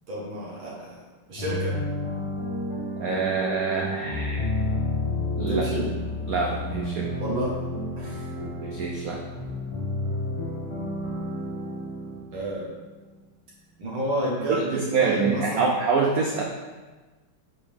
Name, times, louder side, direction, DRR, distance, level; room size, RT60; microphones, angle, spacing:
voice 1, 0.1-1.0 1.3-1.8 5.5-5.9 7.2-7.6 8.0-8.2 12.3-12.7 13.8-15.7, right 1 dB, 65° right, -6 dB, 2.2 m, -30 dB
sound 1, 1.4-13.1, left 2 dB, 25° left, 0.6 m, -31 dB
voice 2, 3.0-4.4 5.3-5.6 6.3-7.1 8.4-9.2 14.5-16.4, right 4 dB, 85° right, 0 dB, 0.7 m, -26 dB
7.4 x 5.1 x 3.6 m, 1.3 s
omnidirectional pair, 2.4 m